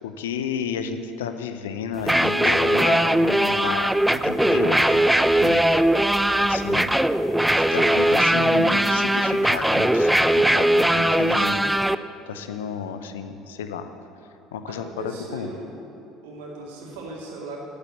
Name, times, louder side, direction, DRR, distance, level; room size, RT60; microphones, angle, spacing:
voice 1, 0.0-5.7 6.4-7.0 7.7-11.7 12.3-13.9 14.5-15.5, left 7 dB, 75° left, 9 dB, 0.7 m, -32 dB
sound 1, 2.0-12.0, right 1 dB, 5° right, 0.4 m, -20 dB
voice 2, 14.7-15.7 16.2-17.6, right 2 dB, 70° right, -2 dB, 2.4 m, -38 dB
8.7 x 8.1 x 8.3 m, 2.8 s
figure-of-eight pair, 60°, 0 cm